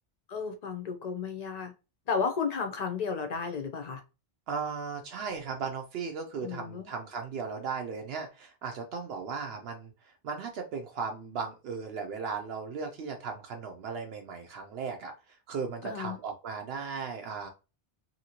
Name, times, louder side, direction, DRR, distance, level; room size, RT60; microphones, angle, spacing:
voice 1, 0.3-1.7 2.1-4.0 6.4-6.9 15.8-16.2, left 5 dB, 45° left, 0.6 m, -33 dB
voice 2, 4.5-9.9 10.2-17.5, right 5 dB, 75° right, 0.8 m, -36 dB
2.8 x 2.8 x 2.8 m
omnidirectional pair, 1.0 m